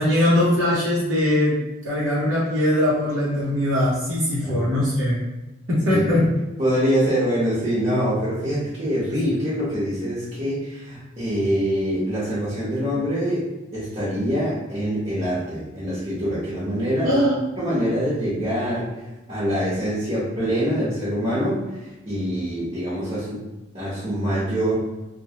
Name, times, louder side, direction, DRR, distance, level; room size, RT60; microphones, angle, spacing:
voice 1, 0.0-1.6 1.8-5.2 5.7-6.2 17.0-17.4, left 1 dB, 80° right, -8 dB, 0.8 m, -21 dB
voice 2, 5.9-6.2 6.6-13.4 13.7-17.2 17.6-18.9 19.3-23.4 23.7-24.7, equal, 35° right, -10 dB, 1.0 m, -24 dB
2.9 x 2.2 x 2.8 m, 1.1 s
head